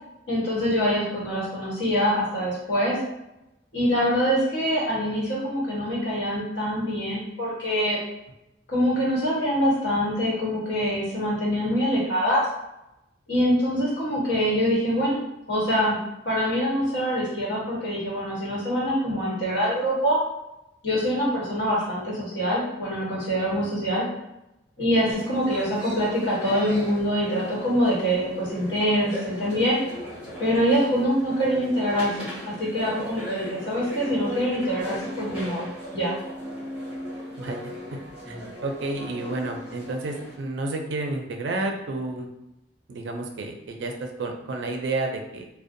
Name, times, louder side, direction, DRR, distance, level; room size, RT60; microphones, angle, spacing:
voice 1, 0.3-3.0 3.7-8.0 8.7-12.4 13.3-15.2 15.5-16.0 16.2-20.2 20.8-24.0 24.8-29.8 30.4-35.7 35.9-36.1, equal, 70° left, -7 dB, 1.1 m, -24 dB
sound 1, 25.1-40.3, equal, 5° right, 0.8 m, -37 dB
voice 2, 38.6-42.3 42.9-45.5, right 2 dB, 70° right, 3 dB, 0.4 m, -30 dB
2.5 x 2.1 x 2.5 m, 0.89 s
head